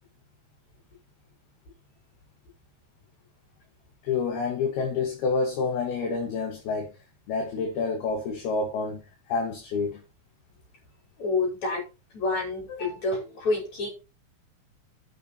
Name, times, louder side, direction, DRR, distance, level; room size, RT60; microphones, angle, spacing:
voice 1, 4.0-6.9 7.3-9.0 9.3-10.0, left 4 dB, 60° left, 3.6 m, -28 dB
voice 2, 11.2-11.8 12.1-13.9, left 3 dB, 35° left, 6.5 m, -28 dB
9.5 x 8.9 x 4.4 m
omnidirectional pair, 5.6 m